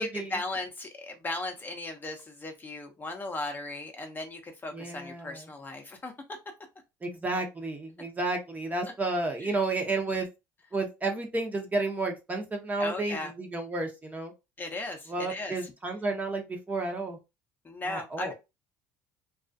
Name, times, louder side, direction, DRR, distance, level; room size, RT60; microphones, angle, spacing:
voice 1, 0.0-6.1 9.4-9.6 12.8-13.3 14.6-15.7 17.6-18.3, left 2 dB, 25° left, 3 dB, 0.6 m, -37 dB
voice 2, 4.7-5.4 7.0-10.3 10.7-14.3 15.1-17.2 17.9-18.3, right 2 dB, 20° right, 3 dB, 0.7 m, -31 dB
2.3 x 2.3 x 2.5 m, 0.25 s
supercardioid pair, 85°, 8 cm